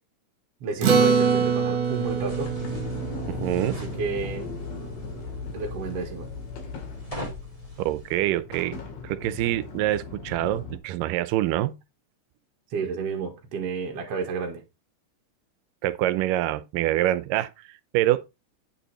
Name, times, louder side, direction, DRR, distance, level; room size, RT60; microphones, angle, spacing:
voice 1, 0.6-2.5 3.7-4.5 5.5-6.3 12.7-14.6, right 4 dB, 50° right, 2.6 m, -31 dB
Acoustic guitar, 0.8-5.5, right 6 dB, 65° right, 2.8 m, -25 dB
Sliding door, 1.6-10.8, left 5 dB, 85° left, 3.6 m, -38 dB
sound 1, 1.8-8.2, left 1 dB, 10° left, 2.0 m, -43 dB
voice 2, 3.3-3.8 7.9-8.8 9.0-11.8 15.8-18.2, right 14 dB, 90° right, 2.3 m, -25 dB
9.2 x 5.5 x 4.2 m
omnidirectional pair, 3.8 m